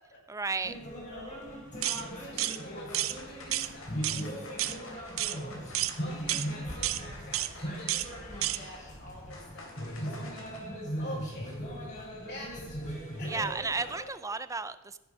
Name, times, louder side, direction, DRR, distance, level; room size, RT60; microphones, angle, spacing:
voice 1, 0.3-0.8 13.2-15.0, right 4 dB, 15° right, 13 dB, 0.5 m, -33 dB
sound 1, 0.6-14.0, equal, 35° left, 3.5 m, -39 dB
sound 2, 1.0-1.4 1.7-10.6, left 2 dB, 80° left, 3.3 m, -50 dB
voice 2, 1.0-1.4 1.8-5.5 6.0-10.3 11.0-11.6 12.2-13.8, left 1 dB, 55° left, -3 dB, 5.7 m, -47 dB
sound 3, 1.8-2.0 2.4-2.6 2.9-3.2 3.5-3.7 4.0-4.2 4.6-4.8 5.2-5.4 5.7-5.9 6.3-6.5 6.8-7.0 7.3-7.5 7.9-8.1 8.4-8.6, right 14 dB, 80° right, 0.6 m, -30 dB
13.5 x 9.9 x 5.6 m, 1.0 s
head